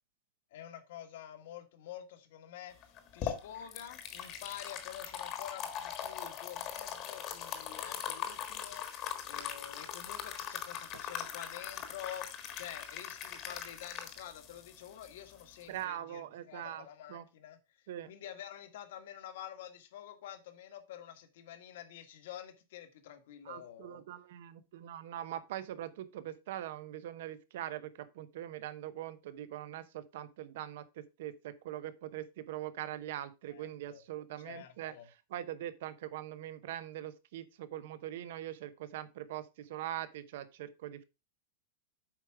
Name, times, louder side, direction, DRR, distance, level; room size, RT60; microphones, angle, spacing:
voice 1, 0.5-24.0 33.5-34.0 34.4-35.1, left 10 dB, 60° left, 1.6 m, -48 dB
sound 1, 2.8-15.8, left 9 dB, 30° left, 1.4 m, -41 dB
voice 2, 15.7-17.2 17.9-18.1 23.4-34.9 35.3-41.0, right 12 dB, 60° right, 0.9 m, -42 dB
8.2 x 5.1 x 4.7 m
supercardioid pair, 170°, 0 cm